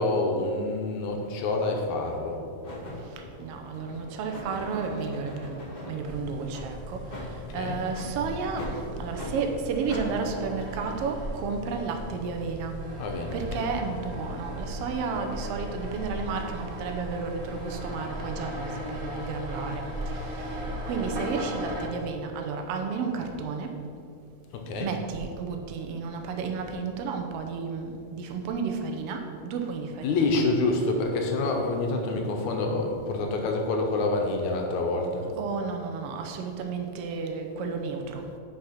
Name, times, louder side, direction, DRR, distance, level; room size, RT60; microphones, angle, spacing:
voice 1, 0.0-2.4 7.3-7.8 13.0-13.7 24.5-24.9 30.0-35.2, left 2 dB, 80° left, 2 dB, 2.2 m, -27 dB
sound 1, 1.2-1.3 2.0-2.3 2.6-6.0 6.5-6.7 7.1-7.3 7.9-8.1 8.6-8.8 9.1-9.3 9.9-10.1, left 1 dB, 25° left, 1.4 m, -40 dB
voice 2, 3.4-7.0 7.5-12.8 13.3-23.7 24.8-30.4 35.4-38.2, right 5 dB, 70° right, 4 dB, 1.5 m, -32 dB
sound 2, 6.0-21.9, equal, 40° right, 1.5 m, -37 dB
6.3 x 5.7 x 5.7 m, 2.5 s
omnidirectional pair, 3.4 m